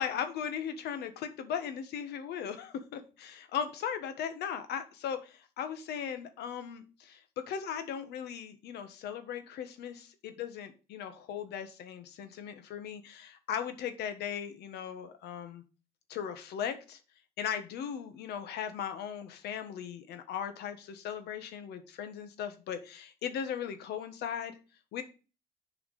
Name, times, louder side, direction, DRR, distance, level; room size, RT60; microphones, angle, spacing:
voice 1, 0.0-15.6 16.1-17.0 17.4-24.5 24.9-25.0, left 8 dB, 75° left, 9 dB, 1.5 m, -38 dB
7.4 x 4.8 x 6.5 m, 0.34 s
cardioid pair, 110°, 17 cm